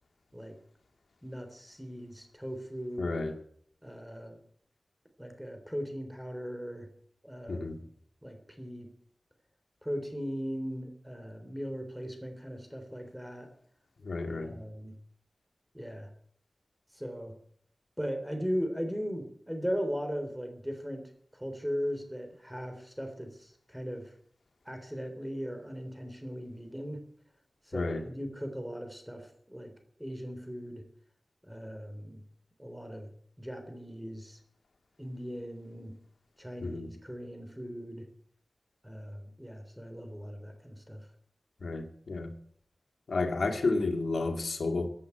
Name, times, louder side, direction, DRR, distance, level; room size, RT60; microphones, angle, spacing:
voice 1, 1.2-3.2 3.8-4.4 5.2-6.9 7.2-7.8 8.2-8.9 9.8-13.5 14.3-14.9 15.7-16.1 16.9-17.3 18.0-24.1 24.7-27.0 27.7-29.7 30.0-30.8 31.5-32.2 32.6-33.1 33.4-34.4 35.0-35.9 36.4-38.1 38.8-41.1, equal, 5° right, 5 dB, 3.6 m, -38 dB
voice 2, 3.0-3.4 7.5-7.8 14.0-14.6 27.7-28.1 36.6-36.9 41.6-42.3 43.1-44.9, left 3 dB, 85° left, 4 dB, 2.2 m, -31 dB
16.0 x 8.5 x 8.1 m, 0.63 s
wide cardioid pair, 80°, 0 cm